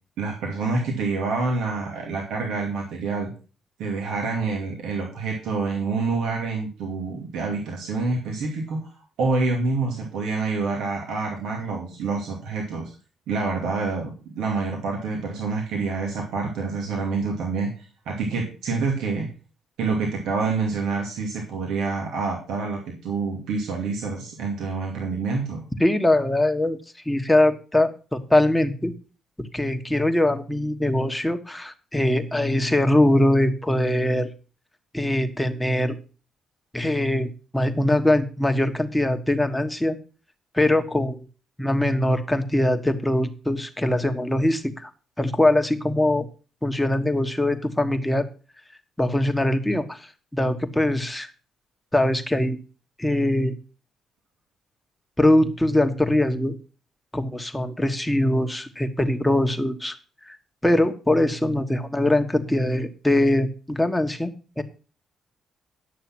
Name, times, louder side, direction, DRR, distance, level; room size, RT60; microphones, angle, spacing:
voice 1, 0.2-3.3 3.8-12.9 13.3-19.3 19.8-25.6, right 4 dB, 85° right, 0 dB, 2.6 m, -27 dB
voice 2, 25.8-26.8 27.0-28.9 29.4-34.3 34.9-36.0 36.7-40.0 40.5-41.3 41.6-44.9 45.2-46.3 46.6-48.3 49.0-51.3 51.9-52.6 53.0-53.5 55.2-56.5 57.1-60.0 60.3-60.4 60.6-64.6, left 1 dB, 5° left, 6 dB, 1.4 m, -22 dB
11.0 x 6.7 x 6.0 m, 0.36 s
cardioid pair, 90°, 0 cm